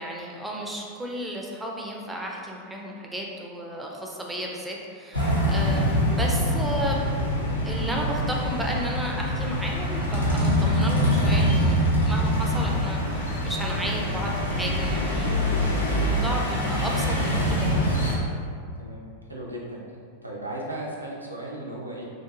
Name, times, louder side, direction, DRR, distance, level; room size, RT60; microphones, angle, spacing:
voice 1, 0.0-7.1 7.6-18.2, equal, 5° right, -2 dB, 0.4 m, -33 dB
sound 1, 5.1-18.1, equal, 80° left, 0.5 m, -24 dB
voice 2, 12.5-12.8 18.8-19.0 19.3-19.8 20.2-22.0, right 1 dB, 85° right, -3 dB, 0.4 m, -36 dB
2.6 x 2.4 x 2.4 m, 2.2 s
figure-of-eight pair, 90°, 0 cm